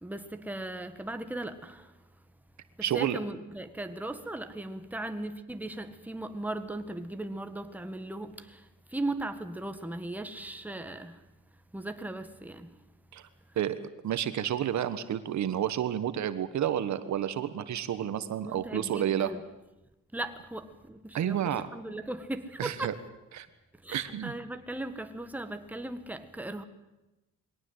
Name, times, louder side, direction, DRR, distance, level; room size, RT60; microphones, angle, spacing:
voice 1, 0.0-2.1 2.9-11.3 11.7-12.8 18.4-19.4 20.1-23.0 23.8-26.6, right 2 dB, 5° right, 1.6 m, -38 dB
voice 2, 2.8-3.2 13.1-13.2 13.6-13.8 14.0-19.3 21.1-21.7 22.6-22.9 23.3-23.5 23.9-24.3, right 10 dB, 65° right, 1.4 m, -30 dB
22.0 x 17.5 x 8.1 m
cardioid pair, 90°, 30 cm